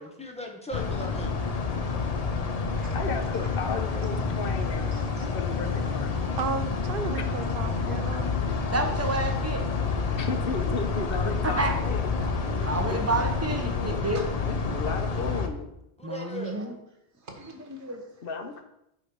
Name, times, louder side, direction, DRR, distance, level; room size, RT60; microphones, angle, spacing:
voice 1, 0.0-1.4 11.4-14.0 16.0-16.6, left 1 dB, 5° left, 1 dB, 1.1 m, -40 dB
sound 1, 0.7-15.5, left 4 dB, 40° left, 0.7 m, -28 dB
voice 2, 1.7-3.0 4.9-5.2 8.1-8.2 14.1-14.3 17.2-17.9, right 3 dB, 85° right, 2 dB, 1.7 m, -47 dB
voice 3, 2.9-6.4 7.1-7.2 10.1-11.6 11.9-12.2 12.9-13.0 14.5-15.7 18.2-18.6, left 4 dB, 60° left, 6 dB, 1.0 m, -34 dB
voice 4, 6.4-8.4, right 5 dB, 60° right, 9 dB, 0.8 m, -33 dB
voice 5, 8.5-9.6 11.4-11.7 12.6-14.2 16.0-16.8 17.5-18.0, right 2 dB, 15° right, 4 dB, 0.9 m, -29 dB
8.4 x 3.5 x 6.0 m, 0.83 s
omnidirectional pair, 1.1 m